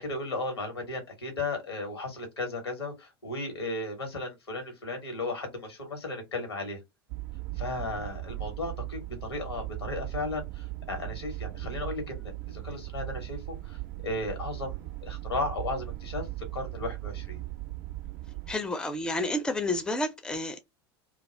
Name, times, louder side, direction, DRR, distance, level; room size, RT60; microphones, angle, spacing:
voice 1, 0.0-6.8 7.6-13.8 14.0-16.3 16.5-17.4, left 2 dB, 80° left, 1.1 m, -35 dB
sound 1, 7.1-18.6, right 18 dB, 50° right, 0.4 m, -38 dB
voice 2, 18.5-20.6, left 1 dB, 5° left, 0.4 m, -30 dB
2.3 x 2.3 x 3.1 m
figure-of-eight pair, 80°, 13 cm